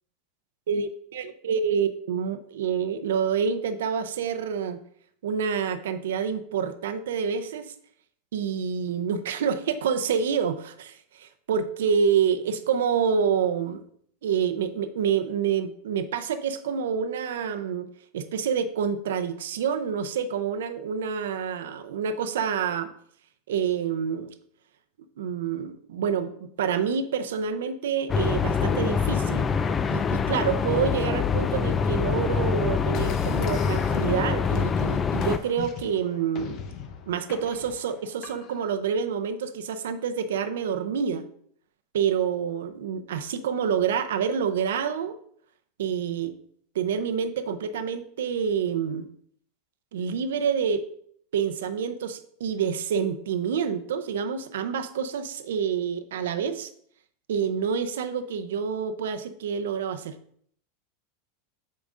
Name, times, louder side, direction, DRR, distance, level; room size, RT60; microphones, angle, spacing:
voice 1, 0.7-4.8 5.2-7.7 8.3-13.8 14.2-17.9 18.1-22.9 23.5-24.3 25.2-29.5 29.9-36.6 37.1-41.2 41.9-45.2 45.8-46.3 46.7-49.1 49.9-50.8 51.3-56.7 57.3-60.2, right 7 dB, 85° right, 9 dB, 0.6 m, -27 dB
sound 1, 28.1-35.4, left 6 dB, 25° left, 0.4 m, -25 dB
sound 2, 32.9-38.7, left 7 dB, 45° left, 0.8 m, -38 dB
8.2 x 5.1 x 2.5 m, 0.63 s
supercardioid pair, 125°, 0 cm